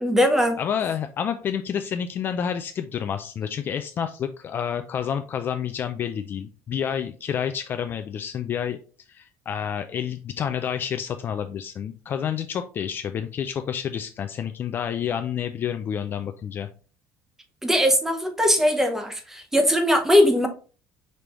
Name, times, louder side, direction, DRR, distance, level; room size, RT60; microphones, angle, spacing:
voice 1, 0.0-0.6 17.6-20.5, equal, 5° right, 6 dB, 0.7 m, -20 dB
voice 2, 0.6-8.8 9.1-16.7, left 8 dB, 35° left, 8 dB, 0.3 m, -29 dB
5.3 x 3.3 x 2.9 m, 0.37 s
cardioid pair, 160°, 6 cm